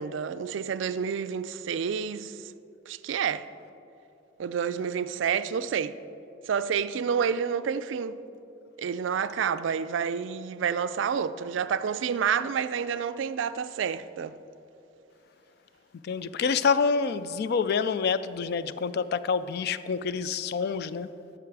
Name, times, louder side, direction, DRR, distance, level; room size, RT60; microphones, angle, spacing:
voice 1, 0.0-2.4 2.9-3.5 4.4-6.0 6.5-8.2 8.8-14.4, right 7 dB, 70° right, 0.3 m, -29 dB
voice 2, 16.0-21.1, left 5 dB, 55° left, 0.3 m, -27 dB
13.5 x 6.0 x 4.7 m
head